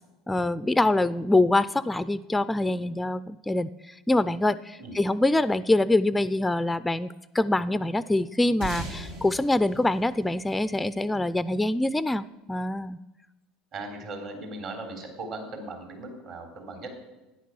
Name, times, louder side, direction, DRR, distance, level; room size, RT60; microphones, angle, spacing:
voice 1, 0.3-13.0, left 2 dB, 10° left, 15 dB, 0.4 m, -25 dB
sound 1, 8.6-11.4, right 2 dB, 70° right, 3.7 m, -39 dB
voice 2, 13.7-16.9, right 2 dB, 50° right, 3 dB, 3.4 m, -38 dB
13.0 x 10.0 x 6.2 m, 1.1 s
figure-of-eight pair, 70°, 0 cm